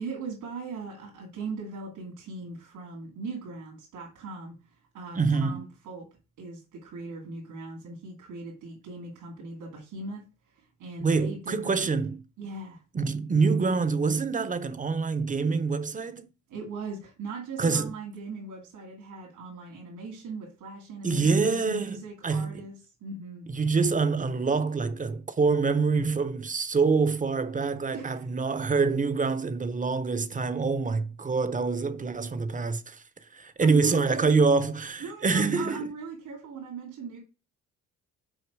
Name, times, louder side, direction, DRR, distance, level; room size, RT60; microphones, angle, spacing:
voice 1, 0.0-6.0 6.4-11.9 12.4-12.8 16.5-22.8 23.0-23.5 27.9-28.3 33.6-34.3 35.0-37.2, right 4 dB, 80° right, 2.7 m, -39 dB
voice 2, 5.1-5.7 11.0-12.2 12.9-16.3 17.6-17.9 21.0-22.6 23.5-33.0 33.3-35.8, right 4 dB, 25° right, 0.8 m, -26 dB
6.4 x 4.4 x 4.7 m
cardioid pair, 90°, 30 cm